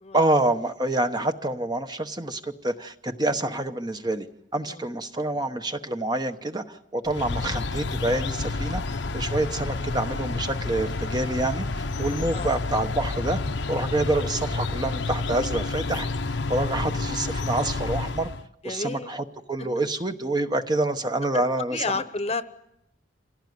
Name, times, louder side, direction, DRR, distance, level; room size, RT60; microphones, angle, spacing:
voice 1, 0.1-4.3 4.5-13.4 13.7-18.3 18.6-21.8, right 2 dB, 20° right, 7 dB, 1.0 m, -27 dB
sound 1, 7.1-18.4, left 3 dB, 70° left, 0.9 m, -29 dB
voice 2, 16.8-17.1 18.6-19.1 21.3-21.4 21.7-22.4, left 3 dB, 35° left, 12 dB, 1.0 m, -31 dB
26.5 x 17.0 x 9.5 m, 0.81 s
head